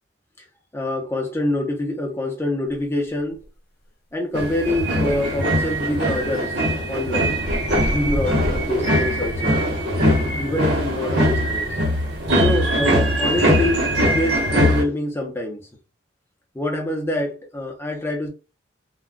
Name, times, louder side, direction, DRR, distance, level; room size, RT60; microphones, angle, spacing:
voice 1, 0.7-3.4 4.1-7.5 7.9-9.7 10.3-11.8 12.3-15.7 16.5-18.3, left 1 dB, 10° left, 0.6 m, -25 dB
sound 1, 2.7-3.6 4.3-6.3 7.3-7.4 7.9-8.0 8.4-9.7 10.2-10.3 10.7-10.8, left 2 dB, 50° left, 0.7 m, -37 dB
sound 2, 4.3-14.8, equal, 55° right, 1.1 m, -21 dB
2.2 x 2.2 x 3.6 m
head